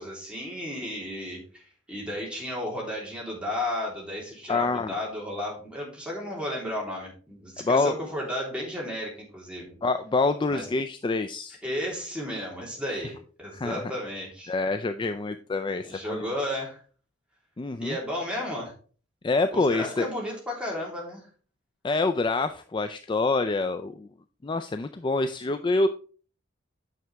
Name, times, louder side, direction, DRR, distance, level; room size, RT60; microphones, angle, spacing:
voice 1, 0.0-1.6 1.9-9.8 10.5-10.7 11.6-14.5 15.8-16.8 17.8-18.7 19.5-21.3, left 1 dB, 5° right, -3 dB, 3.2 m, -33 dB
voice 2, 4.5-4.9 7.6-7.9 9.8-11.6 13.5-13.8 14.5-16.3 17.6-18.0 19.2-20.1 21.8-24.1 24.4-25.9, left 3 dB, 25° left, 8 dB, 0.3 m, -26 dB
9.3 x 6.1 x 3.4 m, 0.40 s
head